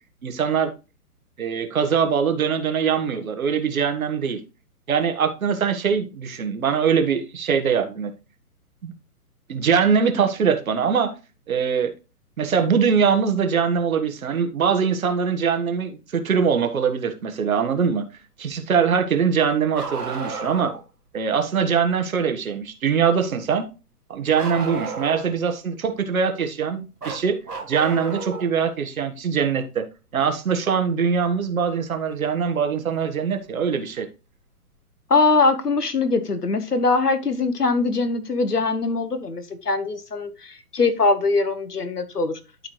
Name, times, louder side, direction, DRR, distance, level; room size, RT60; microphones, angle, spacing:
voice 1, 0.2-0.7 1.4-4.4 4.9-8.1 8.8-8.9 9.5-11.1 11.5-11.9 12.4-18.1 18.4-20.7 21.1-23.7 24.1-27.4 27.7-29.8 30.1-34.1, right 6 dB, 65° right, 1.5 m, -22 dB
Bark, 19.7-20.8 24.4-25.4 27.0-28.5 30.2-30.3 32.2-32.3 33.4-33.5, right 5 dB, 85° right, 2.0 m, -32 dB
voice 2, 35.1-42.7, left 3 dB, 90° left, 1.3 m, -22 dB
12.0 x 4.2 x 3.1 m
figure-of-eight pair, 130°, 45 cm